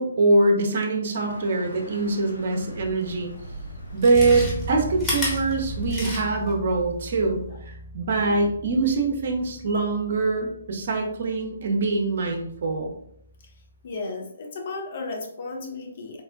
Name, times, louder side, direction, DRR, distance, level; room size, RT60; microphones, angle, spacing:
voice 1, 0.0-3.3 3.9-7.4 7.7-12.9, right 3 dB, 50° right, 3 dB, 0.5 m, -23 dB
sound 1, 1.1-6.1, right 1 dB, 70° left, 1.1 m, -39 dB
Chewing mastication, 3.1-3.2 3.9-6.5 6.9-7.0, left 1 dB, 15° left, 1.0 m, -31 dB
Bass guitar, 4.1-13.8, equal, 10° right, 0.8 m, -40 dB
voice 2, 13.8-16.2, left 3 dB, 45° left, 3 dB, 0.6 m, -34 dB
3.5 x 2.1 x 2.5 m, 0.71 s
figure-of-eight pair, 130°, 0 cm